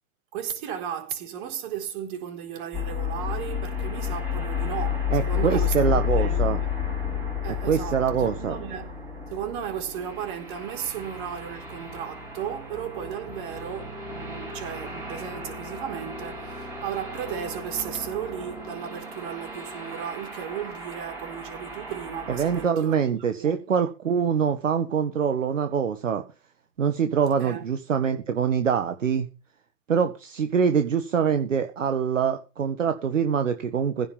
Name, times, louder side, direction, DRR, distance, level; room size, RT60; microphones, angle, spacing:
voice 1, 0.3-6.7 7.4-8.9 9.3-23.0 23.4-23.6 27.4-27.6, right 9 dB, 35° right, 4.3 m, -35 dB
sound 1, 2.7-22.7, left 6 dB, 5° right, 5.7 m, -32 dB
voice 2, 5.1-6.6 7.6-8.6 22.3-26.2 26.8-29.3 29.9-34.1, right 7 dB, 60° right, 1.8 m, -24 dB
16.0 x 5.5 x 7.3 m
figure-of-eight pair, 130°, 43 cm